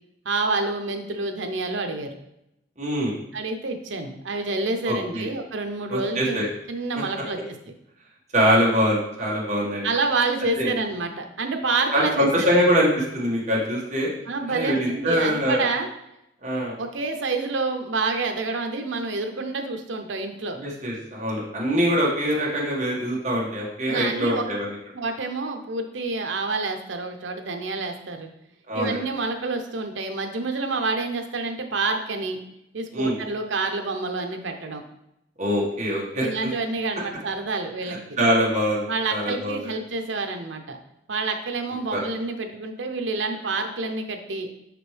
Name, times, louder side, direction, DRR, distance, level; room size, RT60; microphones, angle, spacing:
voice 1, 0.2-2.1 3.3-6.4 6.7-7.4 9.8-12.7 14.3-15.9 16.8-20.6 23.9-24.4 24.9-28.3 28.7-32.4 32.7-34.8 36.2-38.2 38.9-40.8 41.1-44.5, right 3 dB, 85° right, 5 dB, 0.8 m, -28 dB
voice 2, 2.8-3.2 4.9-5.3 5.9-6.5 8.3-9.9 10.6-10.7 11.9-14.1 14.5-15.6 16.4-16.8 20.6-24.8 28.7-29.0 32.9-33.1 35.4-36.3 38.2-39.7 41.9-42.0, equal, 40° right, -5 dB, 1.6 m, -23 dB
6.0 x 5.0 x 3.3 m, 0.83 s
head